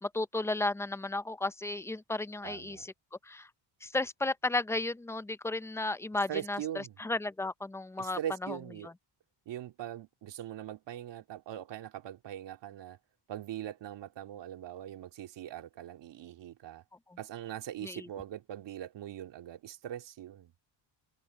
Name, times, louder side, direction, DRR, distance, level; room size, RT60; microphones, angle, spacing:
voice 1, 0.0-2.9 3.2-3.5 3.8-6.6 7.0-8.9 17.8-18.1, left 2 dB, 5° left, 0.5 m, -34 dB
voice 2, 2.4-2.9 6.3-7.0 8.0-8.9 9.5-13.0 13.3-16.8 17.2-20.5, right 11 dB, 70° right, 2.7 m, -41 dB
cardioid pair, 125°, 44 cm